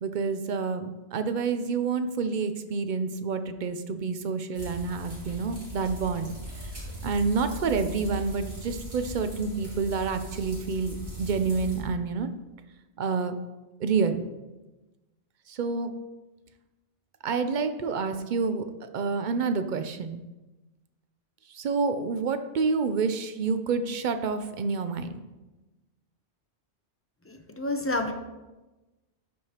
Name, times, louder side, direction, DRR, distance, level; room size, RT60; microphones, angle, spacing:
voice 1, 0.0-6.4 7.0-12.3 13.0-13.3 13.8-14.2 15.5-16.0 17.2-18.7 18.9-20.2 21.5-25.2, right 5 dB, 55° right, 9 dB, 0.5 m, -28 dB
sound 1, 4.5-11.8, equal, 70° right, 2.7 m, -39 dB
voice 2, 27.3-28.1, left 2 dB, 20° left, 5 dB, 0.4 m, -29 dB
12.5 x 4.8 x 2.9 m, 1.1 s
omnidirectional pair, 1.2 m